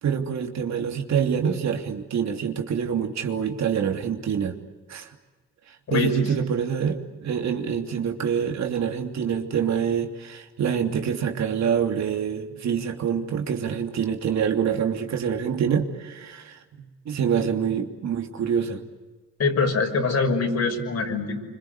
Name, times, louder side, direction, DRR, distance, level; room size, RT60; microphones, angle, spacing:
voice 1, 0.0-4.6 4.9-5.1 5.9-16.6 17.0-18.8, right 7 dB, 65° right, 4 dB, 3.1 m, -26 dB
voice 2, 5.9-6.3 19.4-21.4, left 4 dB, 55° left, 4 dB, 6.1 m, -24 dB
26.5 x 25.5 x 8.2 m, 1.3 s
cardioid pair, 90°, 30 cm